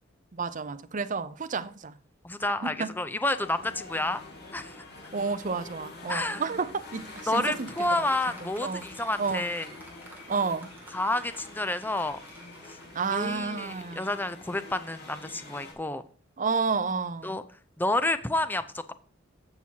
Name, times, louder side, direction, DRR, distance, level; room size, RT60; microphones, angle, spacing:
voice 1, 0.3-1.9 2.6-2.9 5.1-7.7 8.0-8.1 8.4-8.8 9.2-9.4 10.3-10.7 12.9-14.1 16.4-17.4, right 4 dB, 40° right, 0.6 m, -30 dB
voice 2, 2.2-4.2 4.5-4.8 6.1-6.4 7.3-9.7 10.9-12.2 13.1-16.0 17.2-17.4 17.8-18.9, left 2 dB, 10° left, 0.5 m, -29 dB
sound 1, 3.3-15.7, left 2 dB, 55° left, 2.4 m, -46 dB
Applause, 6.6-13.8, right 2 dB, 10° right, 2.5 m, -52 dB
15.5 x 6.2 x 2.8 m
head